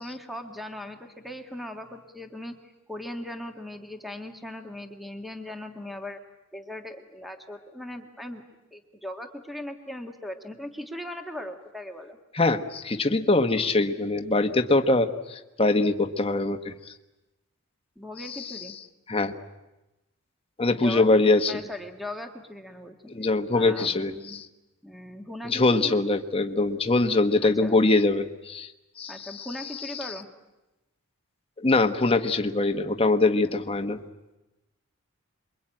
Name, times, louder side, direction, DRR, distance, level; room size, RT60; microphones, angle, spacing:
voice 1, 0.0-2.6 2.9-6.2 6.5-8.4 8.7-12.2 17.9-18.7 20.7-22.9 23.5-24.4 24.8-25.9 27.4-27.8 29.1-30.3, left 1 dB, ahead, 5 dB, 1.5 m, -39 dB
voice 2, 12.3-16.9 18.2-18.7 19.1-19.3 20.6-21.6 23.1-24.5 25.4-28.7 29.0-29.5 29.7-30.1 31.6-34.0, left 2 dB, 25° left, 7 dB, 1.2 m, -23 dB
27.0 x 23.0 x 9.0 m, 1.0 s
head